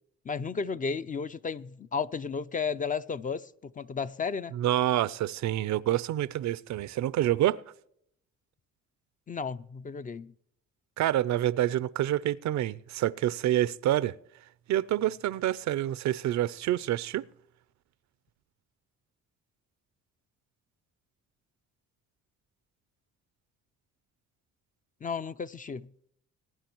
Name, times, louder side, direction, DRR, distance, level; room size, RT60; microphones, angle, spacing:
voice 1, 0.3-3.5 3.8-4.5 9.3-10.3 25.0-25.9, left 5 dB, 25° left, 0.4 m, -33 dB
voice 2, 4.5-7.6 11.0-14.2 14.7-17.3, right 13 dB, 70° right, 0.5 m, -27 dB
21.0 x 9.8 x 3.0 m
cardioid pair, 90°, 30 cm